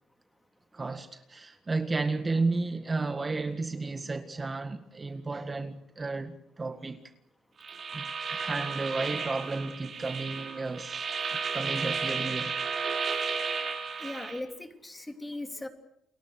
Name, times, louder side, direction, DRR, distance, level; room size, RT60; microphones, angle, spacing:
voice 1, 0.7-7.0 7.9-12.6, right 3 dB, 25° right, 1.8 m, -33 dB
sound 1, 7.6-14.4, right 5 dB, 50° right, 4.7 m, -33 dB
voice 2, 14.0-15.7, left 2 dB, 15° left, 3.3 m, -38 dB
29.5 x 22.0 x 6.6 m
cardioid pair, 90°, 0 cm